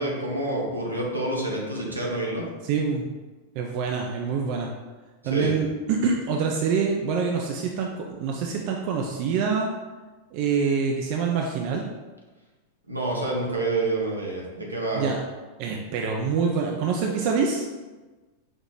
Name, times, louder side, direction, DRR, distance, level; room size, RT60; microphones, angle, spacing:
voice 1, 0.0-2.4 5.3-5.6 12.9-15.1, right 2 dB, 85° right, -3 dB, 0.8 m, -27 dB
voice 2, 2.6-3.0 3.5-4.7 5.2-9.7 10.3-11.9 14.9-15.2 15.6-17.7, right 5 dB, 45° right, 0 dB, 0.4 m, -25 dB
5.3 x 2.9 x 2.4 m, 1.2 s
figure-of-eight pair, 90°, 0 cm